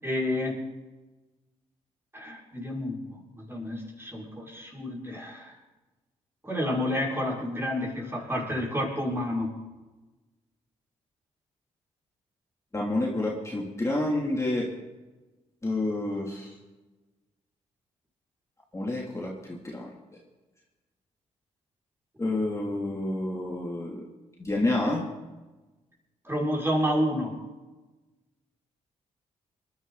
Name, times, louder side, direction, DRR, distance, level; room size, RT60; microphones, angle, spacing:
voice 1, 0.0-0.6 2.1-5.6 6.4-9.5 26.2-27.4, left 1 dB, 15° right, -3 dB, 6.3 m, -30 dB
voice 2, 12.7-14.7 15.6-16.5 18.7-19.9 22.2-24.0 24.4-25.0, left 2 dB, 20° left, -3 dB, 3.1 m, -29 dB
21.5 x 11.5 x 4.2 m, 1.2 s
supercardioid pair, 55°, 14 cm